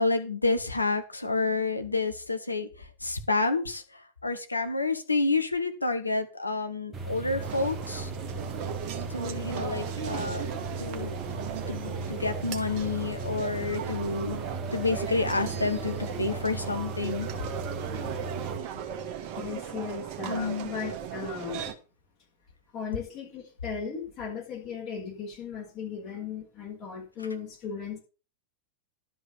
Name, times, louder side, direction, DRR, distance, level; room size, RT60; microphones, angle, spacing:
voice 1, 0.0-2.7 3.0-3.8 4.2-8.1 9.1-10.5 10.8-11.2 11.7-14.4 14.7-17.3 20.3-20.7, left 3 dB, 85° left, 7 dB, 1.3 m, -29 dB
sound 1, 6.9-18.6, right 2 dB, 20° right, 1.7 m, -37 dB
sound 2, 7.4-21.7, right 9 dB, 40° right, 1.4 m, -37 dB
voice 2, 19.4-21.7 22.7-28.0, left 6 dB, 40° left, -1 dB, 4.3 m, -37 dB
11.5 x 4.9 x 7.1 m, 0.35 s
figure-of-eight pair, 90°, 0 cm